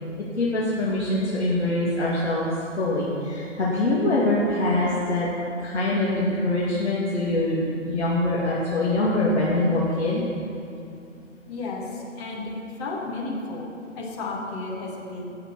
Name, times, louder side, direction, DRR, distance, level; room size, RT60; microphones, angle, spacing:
voice 1, 0.4-2.5 2.8-5.3 5.6-10.2, left 2 dB, 60° left, -6 dB, 2.4 m, -24 dB
voice 2, 11.5-12.5 12.8-13.7 14.0-15.3, left 3 dB, 10° left, -4 dB, 0.7 m, -32 dB
17.0 x 6.7 x 6.1 m, 2.6 s
figure-of-eight pair, 135°, 38 cm